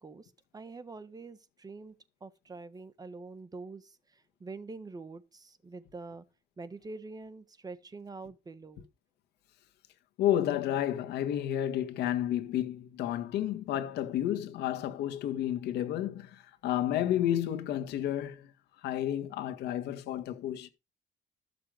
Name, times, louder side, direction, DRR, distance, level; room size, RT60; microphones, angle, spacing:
voice 1, 0.0-1.9 2.2-6.2 6.6-8.8, right 3 dB, 20° right, 1.3 m, -45 dB
voice 2, 10.2-18.5 18.8-20.7, left 11 dB, 80° left, 1.7 m, -31 dB
13.5 x 6.8 x 5.1 m
cardioid pair, 110°, 17 cm